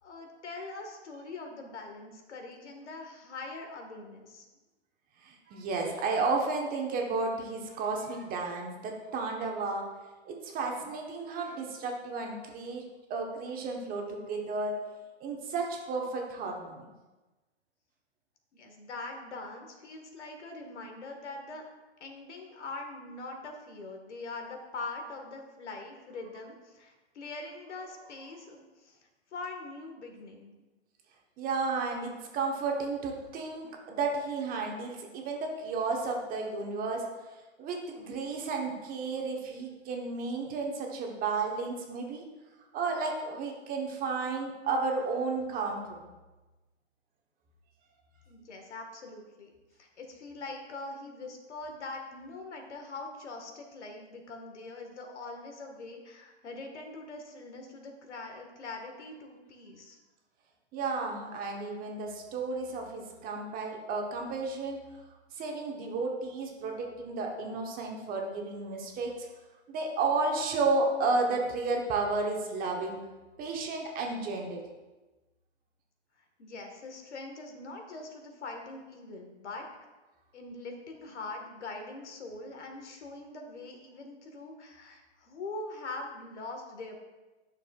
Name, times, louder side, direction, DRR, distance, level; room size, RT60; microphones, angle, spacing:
voice 1, 0.0-4.4 18.5-21.6 22.0-29.0 29.3-30.5 48.3-49.5 49.8-60.0 76.4-79.7 80.3-87.0, left 3 dB, 80° left, 3 dB, 1.7 m, -43 dB
voice 2, 5.2-9.9 10.2-14.9 15.2-16.9 31.4-37.1 37.6-42.2 42.7-46.1 60.7-64.8 65.3-69.3 69.7-73.0 73.4-74.6, right 3 dB, 25° right, 1 dB, 1.2 m, -32 dB
11.0 x 6.6 x 2.4 m, 1.2 s
hypercardioid pair, 125°, 34 cm